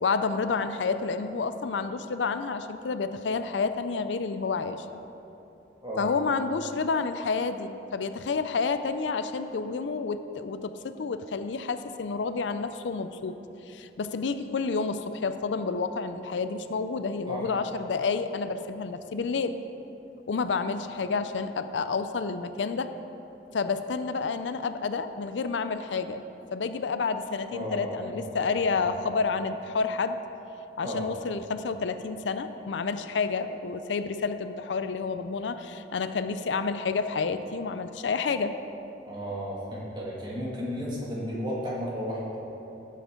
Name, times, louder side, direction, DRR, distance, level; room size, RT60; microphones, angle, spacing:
voice 1, 0.0-4.9 6.0-13.4 13.7-19.6 20.3-22.9 23.5-26.2 26.5-30.2 30.8-38.5, left 4 dB, 90° left, 11 dB, 0.5 m, -29 dB
voice 2, 5.8-6.1 17.3-17.5 27.5-28.8 30.8-31.0 39.0-42.2, equal, 25° right, -6 dB, 2.2 m, -34 dB
15.0 x 7.7 x 3.8 m, 3.0 s
head